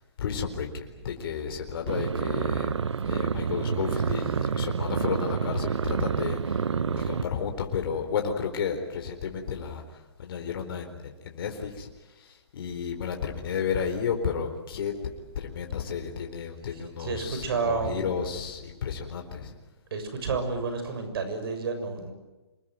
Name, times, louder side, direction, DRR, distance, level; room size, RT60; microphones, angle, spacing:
voice 1, 0.2-0.7 1.0-2.7 3.0-6.6 6.9-9.8 10.2-11.9 12.2-14.9 15.4-19.5, left 7 dB, 55° left, 3 dB, 4.3 m, -32 dB
sound 1, 1.9-7.2, right 6 dB, 90° right, 1.0 m, -28 dB
voice 2, 2.9-3.5 6.6-7.1 17.0-18.1 19.9-22.1, right 4 dB, 55° right, 8 dB, 6.9 m, -31 dB
26.5 x 21.0 x 9.4 m, 1.1 s
hypercardioid pair, 155°, 14 cm